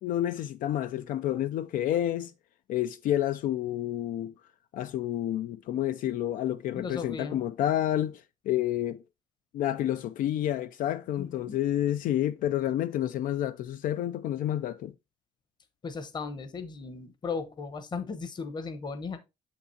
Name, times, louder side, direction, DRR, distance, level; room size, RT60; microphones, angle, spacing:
voice 1, 0.0-2.3 2.7-4.3 4.7-9.0 9.5-14.9, left 12 dB, 70° left, 0.4 m, -29 dB
voice 2, 6.8-7.4 11.2-11.6 15.8-19.2, left 4 dB, 30° left, 0.9 m, -36 dB
7.2 x 5.8 x 2.7 m
cardioid pair, 155°, 15 cm